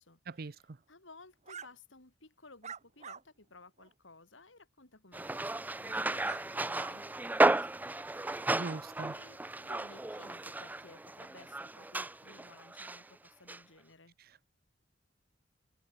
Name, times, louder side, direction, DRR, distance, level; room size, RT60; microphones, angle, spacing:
voice 1, 0.3-0.8 8.5-9.2 14.2-14.5, right 3 dB, 55° right, 0.7 m, -42 dB
voice 2, 0.9-8.5 9.1-14.1, left 3 dB, 90° left, 3.9 m, -57 dB
sound 1, 1.5-1.7 2.6-3.2 3.8-3.9 6.2-6.4 6.7-6.9, right 7 dB, 40° right, 1.3 m, -45 dB
sound 2, 5.1-13.0 13.5-13.6, right 2 dB, 10° right, 0.4 m, -33 dB
head